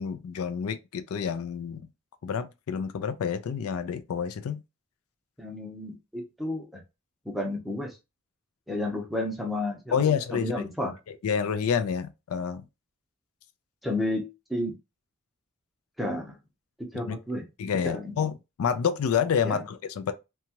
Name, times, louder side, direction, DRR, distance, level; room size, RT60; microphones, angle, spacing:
voice 1, 0.0-1.9 2.2-4.6 9.9-10.6 11.1-12.7 17.1-17.2 17.6-20.1, left 7 dB, 75° left, 0.4 m, -28 dB
voice 2, 5.4-6.8 7.3-8.0 8.7-10.0 10.3-10.9 13.8-14.8 16.0-16.4 16.8-17.4 17.8-18.1 19.4-19.6, left 1 dB, ahead, 0.6 m, -32 dB
2.8 x 2.3 x 2.8 m
head